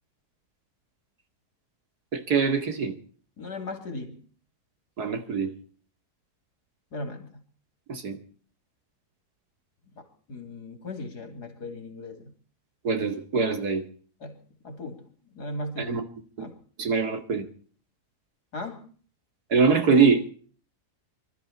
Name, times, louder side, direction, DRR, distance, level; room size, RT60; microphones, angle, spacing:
voice 1, 2.1-2.9 5.0-5.5 7.9-8.2 12.8-13.8 15.8-16.0 16.8-17.4 19.5-20.2, right 5 dB, 75° right, 2.8 m, -23 dB
voice 2, 3.4-4.2 6.9-7.4 10.0-12.3 14.2-14.4 14.6-15.1 15.3-16.0 16.4-16.6 18.5-18.9, left 2 dB, 80° left, 3.7 m, -37 dB
25.0 x 13.0 x 4.2 m
omnidirectional pair, 1.7 m